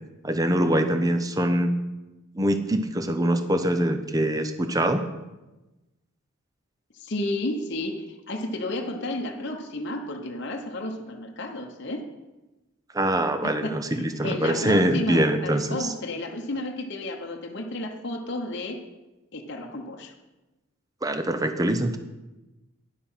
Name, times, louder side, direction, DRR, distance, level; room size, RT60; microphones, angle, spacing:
voice 1, 0.2-1.7 2.4-5.0 12.9-15.9 21.0-22.0, right 1 dB, 15° right, 8 dB, 0.6 m, -24 dB
voice 2, 7.0-12.0 13.4-18.8 19.3-20.1, left 1 dB, 50° left, 2 dB, 0.9 m, -32 dB
10.0 x 6.7 x 5.6 m, 1.1 s
head